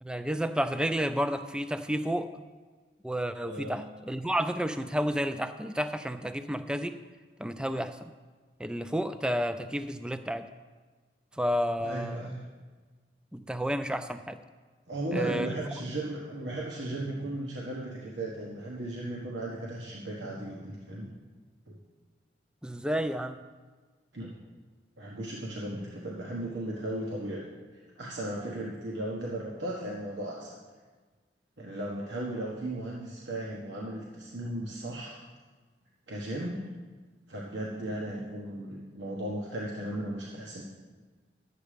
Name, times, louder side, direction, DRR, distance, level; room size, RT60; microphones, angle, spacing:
voice 1, 0.0-2.4 3.0-6.9 7.4-8.1 8.6-10.5 11.4-12.3 13.3-14.4 15.1-15.5 22.6-23.4, equal, 5° right, 10 dB, 0.3 m, -31 dB
voice 2, 3.5-3.8 11.8-12.4 14.9-21.1 21.7-21.8 24.1-24.3 25.0-27.4 27.7-30.6 31.6-35.2 36.1-36.6 37.3-40.6, right 1 dB, 85° right, -3 dB, 1.3 m, -36 dB
11.5 x 8.2 x 5.0 m, 1.4 s
head